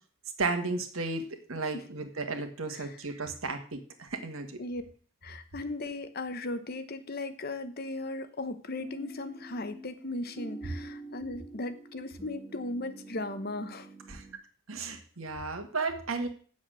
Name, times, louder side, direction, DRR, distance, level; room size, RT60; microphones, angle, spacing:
voice 1, 0.4-4.6 14.1-14.2 14.7-16.3, right 3 dB, 85° right, 6 dB, 1.7 m, -34 dB
voice 2, 5.2-13.9, left 2 dB, 50° left, 11 dB, 1.0 m, -37 dB
sound 1, 8.8-14.3, right 1 dB, 10° right, 1.3 m, -46 dB
8.9 x 7.2 x 6.3 m, 0.42 s
head